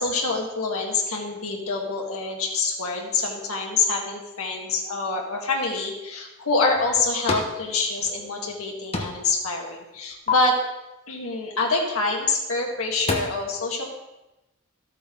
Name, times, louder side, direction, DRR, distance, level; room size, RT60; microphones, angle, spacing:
voice 1, 0.0-10.6 11.1-13.9, left 3 dB, 80° left, 0 dB, 1.7 m, -26 dB
sound 1, 6.5-7.6 7.9-8.6 8.9-9.4 9.7-10.3 12.1-12.3 12.7-13.2, left 3 dB, 30° left, 1.2 m, -30 dB
13.0 x 8.6 x 3.8 m, 1.0 s
head